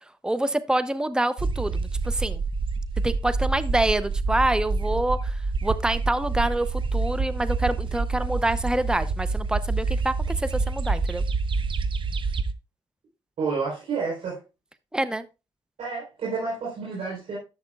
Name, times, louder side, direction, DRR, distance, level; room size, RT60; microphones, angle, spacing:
voice 1, 0.2-2.4 3.0-5.4 5.6-11.2 14.9-15.3, right 1 dB, 5° right, 13 dB, 0.7 m, -26 dB
sound 1, 1.4-12.5, right 4 dB, 50° right, 0.8 m, -27 dB
voice 2, 13.4-14.4 15.8-17.4, right 4 dB, 80° right, -5 dB, 4.0 m, -30 dB
11.5 x 7.3 x 2.4 m, 0.28 s
supercardioid pair, 55°, 11 cm